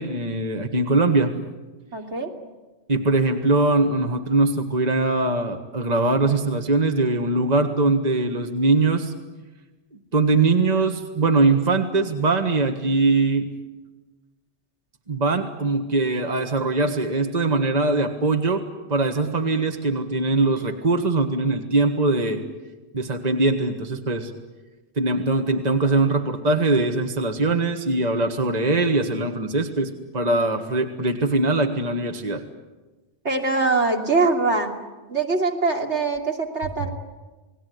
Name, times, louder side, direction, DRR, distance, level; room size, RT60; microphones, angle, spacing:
voice 1, 0.0-1.3 2.9-9.1 10.1-13.5 15.1-18.6 18.9-22.4 22.9-24.3 25.0-32.4, right 3 dB, 35° right, 5 dB, 1.7 m, -21 dB
voice 2, 1.9-2.3 22.3-22.4 33.2-34.7 35.1-36.9, right 3 dB, 70° right, 2 dB, 3.2 m, -23 dB
29.0 x 19.5 x 9.4 m, 1.2 s
omnidirectional pair, 1.2 m